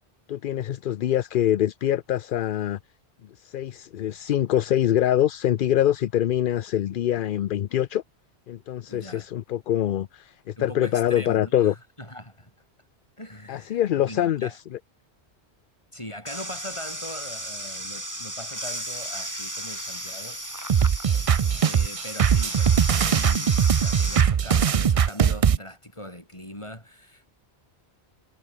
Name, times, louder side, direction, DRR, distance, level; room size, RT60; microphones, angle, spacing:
voice 1, 0.3-2.8 3.4-8.0 8.5-11.7 13.5-14.5, left 11 dB, 60° left, 0.6 m, -24 dB
voice 2, 8.9-9.3 10.6-12.5 13.2-14.6 15.9-20.4 21.2-23.6 23.8-27.3, left 1 dB, 25° left, 7.1 m, -41 dB
sound 1, 16.3-24.2, right 1 dB, 15° right, 3.6 m, -34 dB
sound 2, 20.7-25.6, right 7 dB, 45° right, 0.4 m, -20 dB
omnidirectional pair, 1.1 m